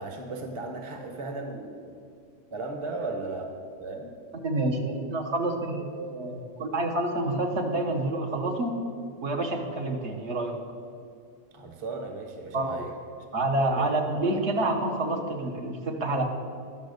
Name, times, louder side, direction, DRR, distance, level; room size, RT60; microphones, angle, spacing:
voice 1, 0.0-2.0 2.5-3.5 3.8-4.1 11.5-12.9 13.8-14.3, right 3 dB, 30° right, 4 dB, 0.9 m, -36 dB
voice 2, 4.4-8.7 9.2-10.5 12.5-12.8 13.3-16.2, right 2 dB, 60° right, 1 dB, 1.3 m, -28 dB
11.0 x 6.2 x 6.6 m, 2.3 s
omnidirectional pair, 1.3 m